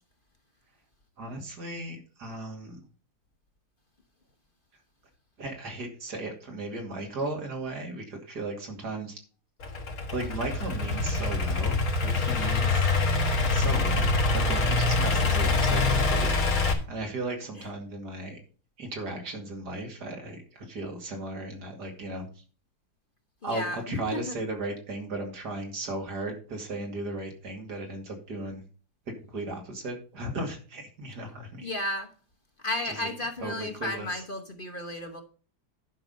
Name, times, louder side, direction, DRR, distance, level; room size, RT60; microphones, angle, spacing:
voice 1, 1.2-2.8 5.4-9.2 10.1-12.9 13.5-16.3 16.9-18.4 18.8-22.3 23.4-28.6 29.3-31.7 32.8-33.1 33.4-34.2, right 2 dB, 80° right, 2 dB, 2.9 m, -36 dB
Idling / Accelerating revving vroom, 9.6-16.7, left 3 dB, 60° left, 2.0 m, -25 dB
voice 2, 23.4-24.3 31.6-32.1 32.6-35.2, left 1 dB, 35° left, 6 dB, 1.1 m, -33 dB
10.5 x 6.0 x 5.4 m, 0.37 s
omnidirectional pair, 1.7 m